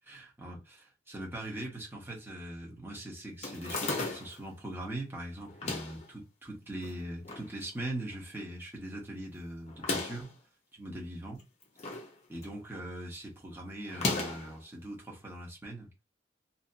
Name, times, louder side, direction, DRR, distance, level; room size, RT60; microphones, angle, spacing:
voice 1, 0.1-10.3 10.8-11.4 12.3-15.9, right 1 dB, 15° right, 1.1 m, -41 dB
sound 1, 3.4-4.4 5.5-6.1 6.8-7.5 7.8-7.9 8.1-8.2 9.7-10.3 11.4-12.1 12.4-12.8 13.9-14.5, left 3 dB, 40° left, 0.8 m, -35 dB
2.8 x 2.7 x 2.7 m
head